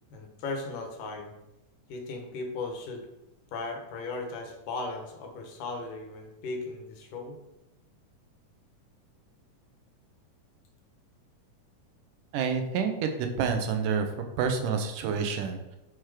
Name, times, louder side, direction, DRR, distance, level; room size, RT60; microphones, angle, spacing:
voice 1, 0.1-1.3 1.9-3.1 3.5-7.4, left 3 dB, 85° left, 3 dB, 2.9 m, -37 dB
voice 2, 12.3-14.1 14.4-15.8, right 6 dB, 80° right, 6 dB, 2.5 m, -28 dB
6.2 x 5.9 x 4.9 m, 0.95 s
omnidirectional pair, 3.7 m